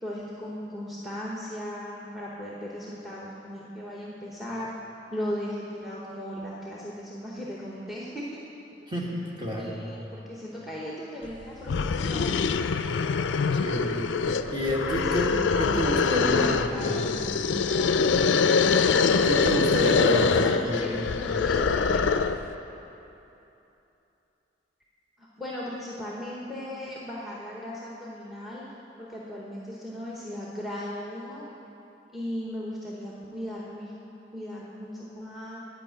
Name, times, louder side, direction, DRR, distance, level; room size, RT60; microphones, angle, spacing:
voice 1, 0.0-4.7 5.1-8.4 9.5-12.7 15.2-18.0 20.5-22.1 25.2-28.7 29.0-31.5 32.1-33.9 34.3-35.6, equal, ahead, -5 dB, 1.0 m, -37 dB
voice 2, 8.9-9.7 13.6-14.0 14.3-17.0 19.2-21.0, equal, 25° right, -4 dB, 1.7 m, -29 dB
sound 1, 11.3-11.4 11.7-22.5, left 5 dB, 80° left, 0.4 m, -24 dB
10.5 x 5.8 x 8.8 m, 3.0 s
head